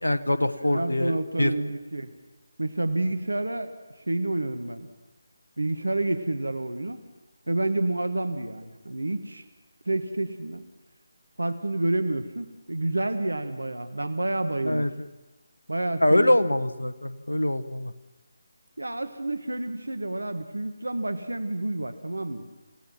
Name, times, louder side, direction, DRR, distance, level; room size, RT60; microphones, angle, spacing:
voice 1, 0.0-1.5 14.6-14.9 16.0-17.9, left 1 dB, 80° left, 11 dB, 1.2 m, -24 dB
voice 2, 0.6-2.1 2.6-4.9 5.6-7.0 7.5-9.4 9.8-10.7 11.4-14.9 15.7-16.4 18.8-22.5, right 2 dB, 75° right, 9 dB, 1.7 m, -29 dB
28.0 x 17.5 x 6.0 m, 1.1 s
figure-of-eight pair, 150°, 0 cm